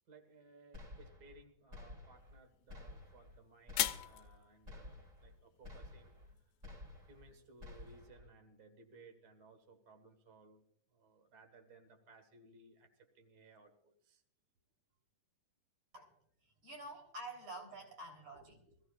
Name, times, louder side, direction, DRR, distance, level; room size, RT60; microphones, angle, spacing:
voice 1, 0.1-6.4 7.1-10.6 10.9-14.2 16.9-17.1 18.3-18.8, right 3 dB, 70° right, 6 dB, 0.9 m, -62 dB
sound 1, 0.7-1.4 1.7-2.4 2.7-3.4 3.7-4.4 4.7-5.3 5.6-6.3 6.6-7.3 7.6-8.3, left 2 dB, 20° right, 2.8 m, -52 dB
sound 2, 2.2-8.1, left 13 dB, 75° left, 2.4 m, -44 dB
voice 2, 16.4-18.6, right 1 dB, 40° right, 0 dB, 4.6 m, -49 dB
23.0 x 15.0 x 2.5 m, 0.69 s
omnidirectional pair, 4.5 m